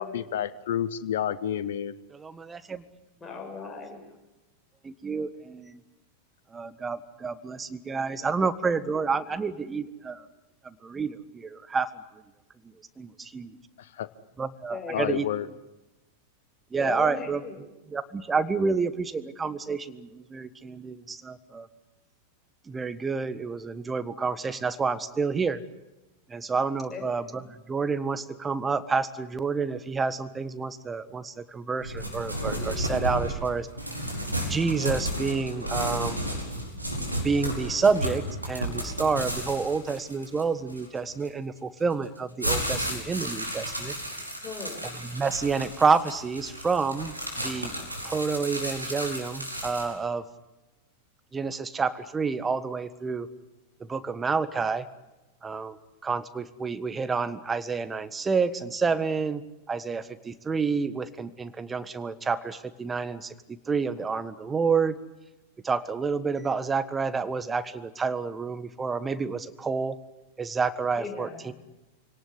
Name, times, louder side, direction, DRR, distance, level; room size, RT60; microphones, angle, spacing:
voice 1, 0.0-1.9 13.8-14.1 14.9-15.5, left 10 dB, 60° left, 15 dB, 1.0 m, -30 dB
voice 2, 2.1-2.8 4.8-5.8 6.5-10.3 10.6-11.9 13.0-13.6 14.4-15.3 16.7-21.7 22.7-25.6 26.3-33.7 34.5-36.2 37.2-43.9 44.8-47.7 48.0-50.2 51.3-53.3 53.8-54.9 55.4-55.8 56.0-59.4 59.7-63.3 63.7-65.0 65.6-70.0 70.4-71.5, right 5 dB, 15° right, 14 dB, 1.5 m, -29 dB
voice 3, 3.2-4.0 14.7-15.0 16.8-17.5 26.9-27.0 44.4-44.8 71.0-71.3, left 4 dB, 15° left, 2 dB, 7.2 m, -37 dB
sound 1, 31.8-41.3 41.9-49.9, equal, 85° right, 5.0 m, -33 dB
26.5 x 18.5 x 9.9 m, 1.0 s
figure-of-eight pair, 90°, 0 cm